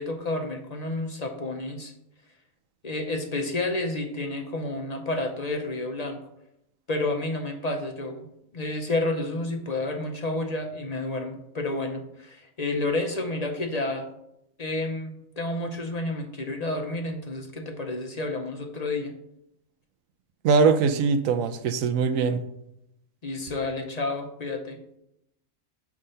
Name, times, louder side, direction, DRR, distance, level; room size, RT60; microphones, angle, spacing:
voice 1, 0.0-1.9 2.8-6.2 6.9-8.3 8.5-14.1 14.6-19.1 23.2-24.8, left 2 dB, 40° left, 3 dB, 0.6 m, -30 dB
voice 2, 20.4-22.4, right 5 dB, 85° right, 10 dB, 1.0 m, -22 dB
6.4 x 3.6 x 5.5 m, 0.80 s
omnidirectional pair, 1.4 m